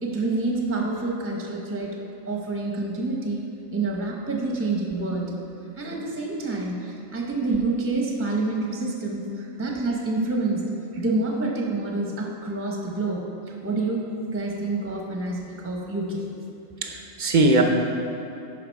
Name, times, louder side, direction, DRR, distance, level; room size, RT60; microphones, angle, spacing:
voice 1, 0.0-2.0 2.2-3.4 3.7-5.3 5.8-10.6 11.0-16.2, right 2 dB, 10° right, -1 dB, 0.8 m, -27 dB
voice 2, 16.8-17.6, right 2 dB, 45° right, 2 dB, 0.7 m, -21 dB
11.5 x 4.8 x 4.7 m, 2.8 s
omnidirectional pair, 1.4 m